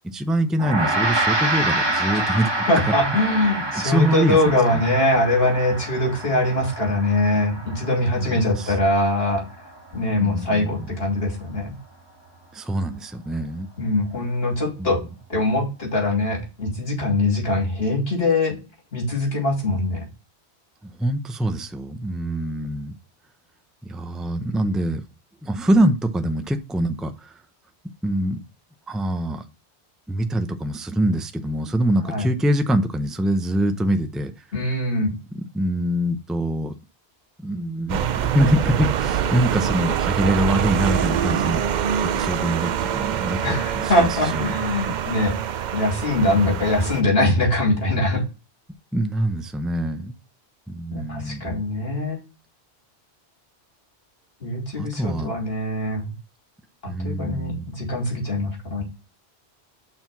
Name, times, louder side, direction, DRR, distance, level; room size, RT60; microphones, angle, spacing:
voice 1, 0.0-2.9 3.8-4.8 8.1-8.8 10.1-10.9 12.5-13.7 14.8-14.9 20.8-22.9 23.8-25.0 25.4-27.4 28.0-28.4 28.9-29.4 30.1-34.5 35.3-36.8 37.4-41.6 42.0-44.1 44.3-44.5 46.2-46.7 48.9-50.1 50.7-51.5 54.8-55.3 56.9-57.7, right 1 dB, ahead, 9 dB, 0.4 m, -24 dB
Gong, 0.6-10.1, right 2 dB, 25° right, 1.3 m, -27 dB
voice 2, 2.7-9.4 9.9-11.7 13.8-15.0 15.3-18.6 18.9-20.0 32.1-32.3 34.5-35.1 43.4-45.3 45.7-48.2 50.9-52.2 54.4-56.1 56.8-58.8, left 1 dB, 65° left, -1 dB, 3.1 m, -22 dB
sound 1, 37.9-47.0, right 9 dB, 55° right, 0.5 m, -25 dB
5.8 x 4.4 x 5.9 m, 0.28 s
omnidirectional pair, 1.1 m